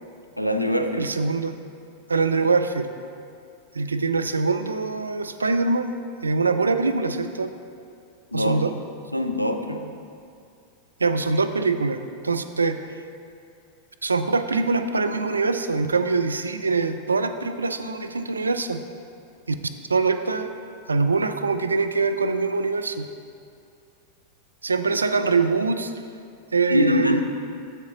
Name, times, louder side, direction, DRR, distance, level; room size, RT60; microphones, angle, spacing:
voice 1, 0.4-1.1 8.3-8.5 9.1-9.9 26.7-27.2, left 1 dB, 90° left, 6 dB, 0.4 m, -23 dB
voice 2, 1.0-1.6 2.1-2.9 3.7-5.9 6.2-7.5 8.3-8.7 11.0-12.8 14.0-18.8 19.5-19.6 19.9-20.5 20.9-23.1 24.6-25.9 26.5-27.2, right 4 dB, 75° right, 8 dB, 0.4 m, -23 dB
7.0 x 6.6 x 3.9 m, 2.4 s
figure-of-eight pair, 90°, 0 cm